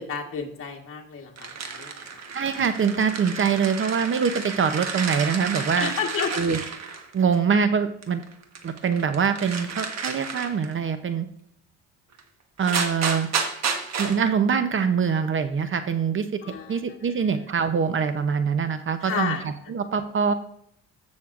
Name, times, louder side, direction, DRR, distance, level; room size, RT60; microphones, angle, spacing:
voice 1, 0.0-2.0 5.8-6.4 16.4-16.8 17.2-17.3 19.0-19.4, left 6 dB, 45° left, 1 dB, 1.4 m, -31 dB
sound 1, 1.4-7.4 8.0-10.7 12.2-12.3 12.6-14.2, right 5 dB, 60° right, 1.3 m, -31 dB
voice 2, 2.3-5.9 6.3-6.6 7.1-8.2 8.6-11.3 12.6-13.3 14.0-16.2 16.7-20.3, right 6 dB, 40° right, 10 dB, 0.7 m, -24 dB
14.0 x 6.3 x 2.5 m, 0.68 s
cardioid pair, 90°, 30 cm